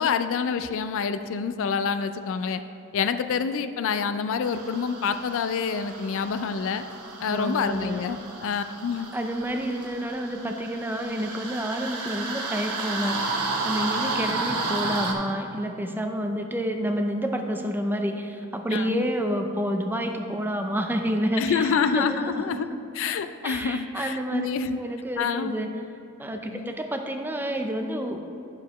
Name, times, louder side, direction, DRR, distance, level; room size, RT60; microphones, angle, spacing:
voice 1, 0.0-2.6 2.9-6.8 7.2-9.1 18.7-19.1 21.4-22.7 22.9-24.8 25.2-25.6 26.5-26.7, left 6 dB, 60° left, 10 dB, 0.3 m, -27 dB
sound 1, 4.4-15.1, right 3 dB, 90° right, 1.0 m, -32 dB
voice 2, 7.3-8.0 9.1-22.8 23.4-24.5 24.7-25.7 26.2-28.3, equal, 10° right, 5 dB, 0.4 m, -29 dB
10.5 x 6.7 x 3.0 m, 2.9 s
head